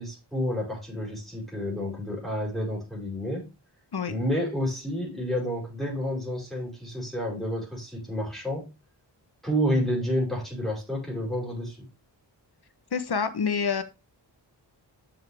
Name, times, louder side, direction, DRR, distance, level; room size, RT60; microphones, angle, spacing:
voice 1, 0.0-3.5 4.1-8.7 9.4-11.9, equal, ahead, -3 dB, 5.1 m, -30 dB
voice 2, 12.9-13.8, left 6 dB, 60° left, 11 dB, 1.2 m, -27 dB
7.2 x 6.8 x 3.5 m, 0.27 s
wide cardioid pair, 75°, 43 cm